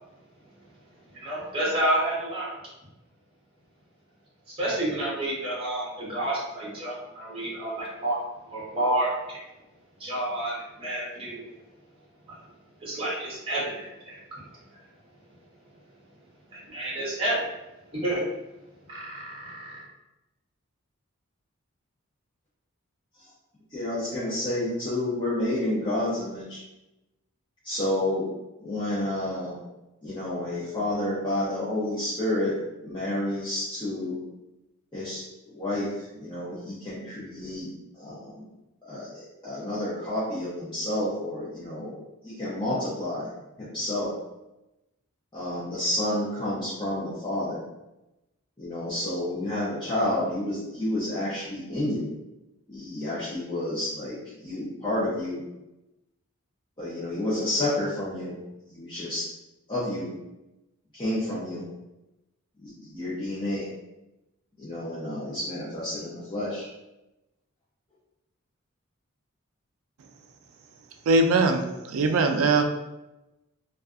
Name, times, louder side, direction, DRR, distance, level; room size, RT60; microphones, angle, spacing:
voice 1, 1.1-2.6 4.6-8.2 8.5-9.4 10.0-11.5 12.3-12.4 12.8-14.2 16.5-17.4 18.0-18.2 18.9-19.8, right 1 dB, 25° right, -7 dB, 0.8 m, -29 dB
voice 2, 23.7-26.6 27.6-28.3 28.6-29.6 30.0-32.5 32.8-34.2 34.9-37.7 38.0-38.5 38.8-39.1 39.4-41.9 42.2-43.3 43.6-44.1 45.3-47.6 48.6-52.1 52.7-55.4 56.8-58.3 58.7-59.2 59.7-60.1 60.9-61.6 62.6-63.7 64.6-66.7, left 1 dB, 20° left, -11 dB, 0.6 m, -30 dB
voice 3, 71.1-72.6, right 3 dB, 75° right, 5 dB, 0.3 m, -21 dB
2.6 x 2.3 x 2.3 m, 0.97 s
head